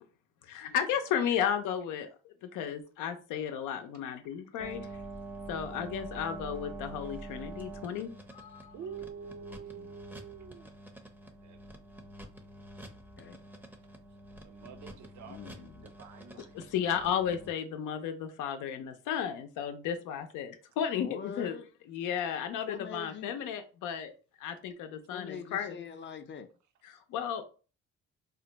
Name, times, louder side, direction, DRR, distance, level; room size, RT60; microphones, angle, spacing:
voice 1, 0.4-2.1 2.4-4.9 5.5-8.7 16.5-21.6 21.9-24.1 24.4-25.8 27.1-27.4, left 8 dB, 90° left, 0.6 m, -34 dB
sound 1, 4.6-17.5, right 2 dB, 5° right, 0.5 m, -46 dB
voice 2, 8.7-10.7 11.2-11.6 14.4-16.5 25.3-25.4, right 7 dB, 70° right, 0.6 m, -47 dB
voice 3, 15.2-15.9 21.0-21.7 22.7-23.5 25.1-26.5, left 6 dB, 40° left, 0.5 m, -44 dB
2.5 x 2.2 x 3.8 m
cardioid pair, 90°, 30 cm